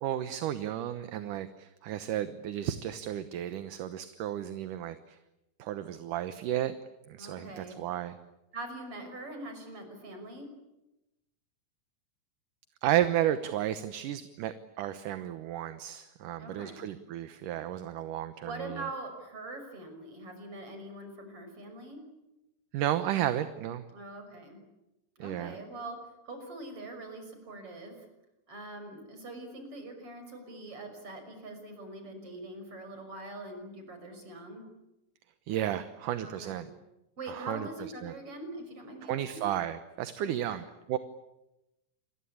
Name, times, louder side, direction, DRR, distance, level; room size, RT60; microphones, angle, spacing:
voice 1, 0.0-5.2 5.6-6.8 7.1-8.2 12.8-18.8 22.7-23.8 25.2-25.6 35.5-36.7 37.3-37.7 38.0-38.1 39.1-41.0, right 12 dB, 70° right, 11 dB, 2.5 m, -33 dB
voice 2, 7.2-7.8 8.5-10.5 16.4-16.9 18.4-22.0 23.9-24.6 25.2-26.0 26.3-27.9 28.5-34.7 36.2-36.7 37.2-39.5 40.2-40.7, right 2 dB, 40° right, 6 dB, 6.9 m, -43 dB
29.0 x 22.5 x 8.6 m, 0.94 s
omnidirectional pair, 4.0 m